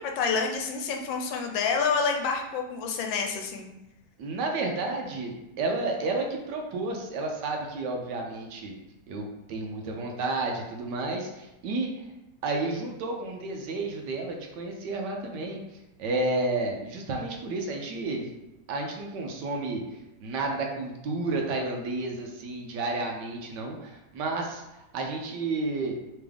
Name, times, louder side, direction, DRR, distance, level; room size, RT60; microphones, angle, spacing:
voice 1, 0.0-3.7, left 5 dB, 80° left, 3 dB, 1.3 m, -28 dB
voice 2, 4.2-8.7 9.1-12.0 12.4-15.6 16.0-18.3 18.7-19.8 20.2-25.9, right 2 dB, 70° right, 2 dB, 1.2 m, -31 dB
3.5 x 3.4 x 3.4 m, 0.93 s
omnidirectional pair, 2.0 m